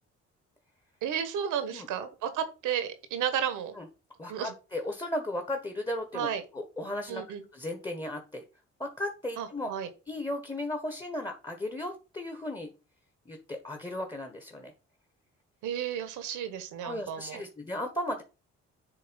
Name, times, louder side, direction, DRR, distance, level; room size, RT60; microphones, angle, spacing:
voice 1, 1.0-3.7 4.3-4.5 6.1-6.4 7.1-7.4 9.4-9.9 15.6-17.4, right 9 dB, 90° right, 10 dB, 1.3 m, -33 dB
voice 2, 4.2-6.3 6.5-7.2 7.5-8.4 8.8-9.7 10.1-12.7 13.3-14.7 16.8-18.2, left 1 dB, 15° left, 4 dB, 1.3 m, -35 dB
7.7 x 3.1 x 5.2 m, 0.31 s
cardioid pair, 90°, 30 cm